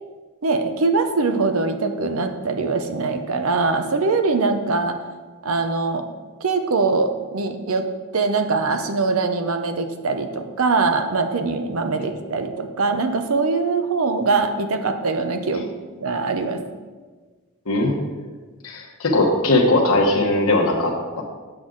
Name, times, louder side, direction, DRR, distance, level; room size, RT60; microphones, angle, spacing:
voice 1, 0.4-5.0 5.4-6.0 6.4-7.9 8.1-15.7 16.0-16.6, right 3 dB, 70° right, 7 dB, 0.7 m, -22 dB
voice 2, 17.7-18.0 18.6-21.2, left 2 dB, 75° left, -1 dB, 1.1 m, -19 dB
7.8 x 6.3 x 3.8 m, 1.4 s
head